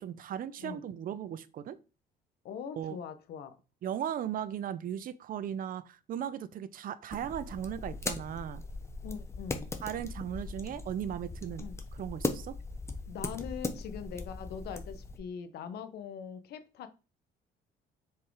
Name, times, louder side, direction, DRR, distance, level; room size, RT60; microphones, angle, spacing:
voice 1, 0.0-1.8 2.8-3.0 3.8-8.6 9.8-12.6, right 9 dB, 55° right, 0.7 m, -37 dB
voice 2, 2.4-3.5 9.0-9.7 11.6-11.8 13.1-16.9, left 7 dB, 70° left, 1.2 m, -42 dB
sound 1, 7.1-15.2, left 2 dB, 15° left, 1.1 m, -39 dB
6.9 x 4.8 x 4.8 m
cardioid pair, 110°, 17 cm